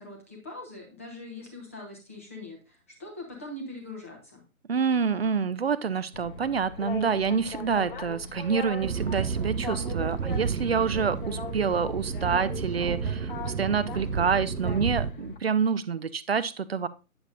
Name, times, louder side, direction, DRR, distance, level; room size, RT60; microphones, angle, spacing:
voice 1, 0.0-4.4, left 2 dB, 10° left, 0 dB, 0.6 m, -42 dB
voice 2, 4.7-16.9, right 6 dB, 45° right, 15 dB, 0.4 m, -27 dB
Boat Water vehicle, 6.1-15.4, left 3 dB, 40° left, 0.8 m, -40 dB
sound 1, 8.8-15.1, right 6 dB, 85° right, 0.6 m, -31 dB
8.8 x 6.9 x 2.4 m, 0.30 s
figure-of-eight pair, 140°, 43 cm